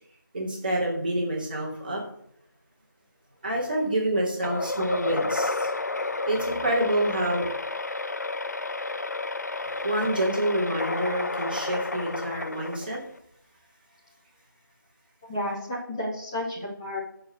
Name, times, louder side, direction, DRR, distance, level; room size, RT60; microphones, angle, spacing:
voice 1, 0.3-2.0 3.4-5.7 6.0-7.6 9.6-13.0, right 1 dB, 25° right, -3 dB, 2.9 m, -27 dB
sound 1, 4.4-13.2, left 3 dB, 50° left, 0.7 m, -31 dB
voice 2, 15.3-17.0, left 1 dB, 15° left, -6 dB, 2.6 m, -31 dB
13.5 x 5.8 x 6.8 m, 0.69 s
figure-of-eight pair, 175°, 11 cm